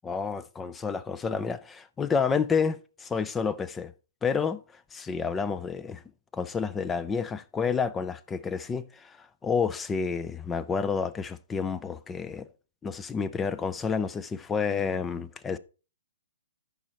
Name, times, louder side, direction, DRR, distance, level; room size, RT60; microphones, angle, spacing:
voice 1, 0.0-3.9 4.2-6.0 6.3-12.5 12.8-15.6, left 5 dB, 15° left, 0.4 m, -30 dB
13.0 x 5.1 x 2.9 m
hypercardioid pair, 140°, 0 cm